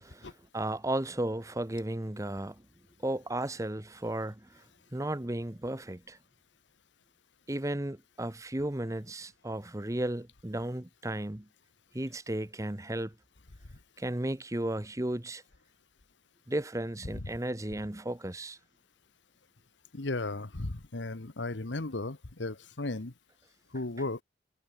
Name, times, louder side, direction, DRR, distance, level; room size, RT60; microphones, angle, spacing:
voice 1, 0.2-2.6 3.0-4.6 4.9-6.2 7.5-11.5 11.9-13.1 14.0-15.4 16.5-18.6, right 1 dB, 15° right, 1.0 m, -34 dB
voice 2, 19.9-23.1 23.7-24.2, left 2 dB, 80° left, 1.4 m, -35 dB
head